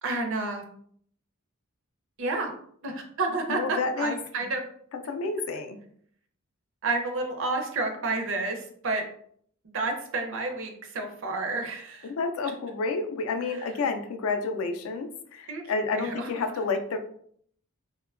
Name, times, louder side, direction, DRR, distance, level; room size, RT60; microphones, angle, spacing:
voice 1, 0.0-0.6 2.2-2.5 2.8-4.7 6.8-9.0 9.6-12.1 13.4-13.8 15.5-15.6 15.9-16.4, right 3 dB, 60° right, 4 dB, 0.5 m, -30 dB
voice 2, 3.5-4.2 5.1-5.8 12.0-17.0, left 4 dB, 70° left, 7 dB, 0.3 m, -30 dB
2.8 x 2.1 x 2.4 m, 0.62 s
head